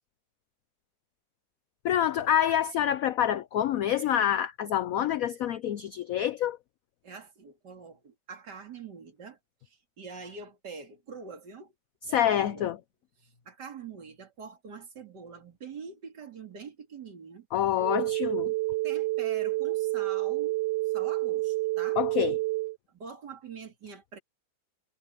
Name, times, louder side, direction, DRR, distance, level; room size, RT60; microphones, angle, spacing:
voice 1, 1.8-6.6 12.1-12.8 17.5-18.5 22.0-22.4, left 10 dB, 85° left, 0.7 m, -27 dB
voice 2, 7.0-9.4 9.7-11.7 12.0-12.7 13.2-17.5 18.8-20.6 20.9-22.0 22.9-24.2, right 5 dB, 60° right, 3.3 m, -44 dB
sound 1, 17.8-22.8, right 20 dB, 80° right, 1.3 m, -29 dB
omnidirectional pair, 2.1 m